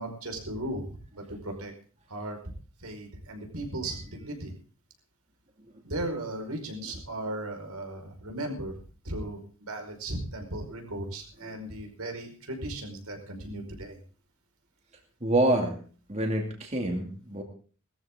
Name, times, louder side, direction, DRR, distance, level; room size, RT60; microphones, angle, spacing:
voice 1, 0.0-1.7 2.1-2.4 2.8-4.5 5.8-8.7 9.0-14.0, right 1 dB, 80° right, 3 dB, 5.1 m, -36 dB
voice 2, 15.2-15.8 16.1-17.4, right 1 dB, 30° right, 2 dB, 2.5 m, -27 dB
19.0 x 14.5 x 3.7 m, 0.40 s
head